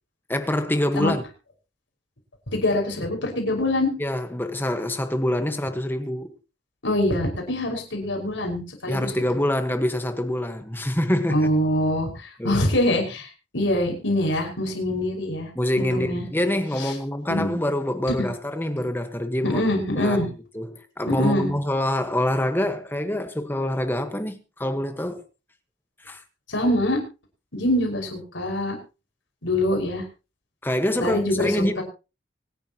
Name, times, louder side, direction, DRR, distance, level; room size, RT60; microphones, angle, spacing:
voice 1, 0.3-1.2 4.0-6.3 8.9-11.5 12.4-12.6 15.5-19.6 20.0-20.3 20.5-25.2 26.0-26.2 29.7-29.8 30.6-31.8, left 1 dB, 10° left, 1.4 m, -25 dB
voice 2, 2.5-3.9 6.8-9.1 11.3-13.3 13.5-15.5 15.8-16.2 16.8-16.9 17.3-17.6 18.2-18.3 19.4-20.3 21.1-21.5 26.5-27.0 27.5-28.8 29.4-30.0 31.0-31.8, left 1 dB, 90° left, 5.5 m, -24 dB
25.0 x 10.0 x 3.0 m
head